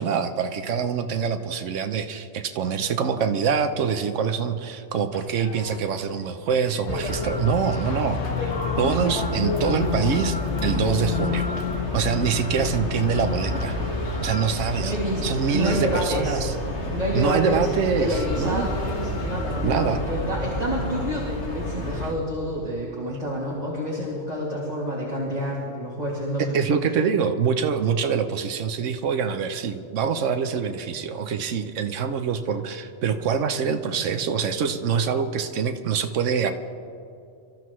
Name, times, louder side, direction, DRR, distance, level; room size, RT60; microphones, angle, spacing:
voice 1, 0.0-10.4 10.6-11.5 11.9-13.8 14.2-14.9 15.2-16.5 17.1-18.7 19.6-20.0 26.4-36.5, right 6 dB, 85° right, 8 dB, 1.1 m, -25 dB
sound 1, 5.1-16.9 17.8-20.4, left 10 dB, 90° left, 1.1 m, -35 dB
sound 2, 6.8-22.1, left 1 dB, 65° left, 2.0 m, -29 dB
voice 2, 14.8-15.2 15.5-16.5 16.9-26.6, equal, 35° right, -6 dB, 2.6 m, -28 dB
27.0 x 13.5 x 3.1 m, 2.6 s
omnidirectional pair, 1.2 m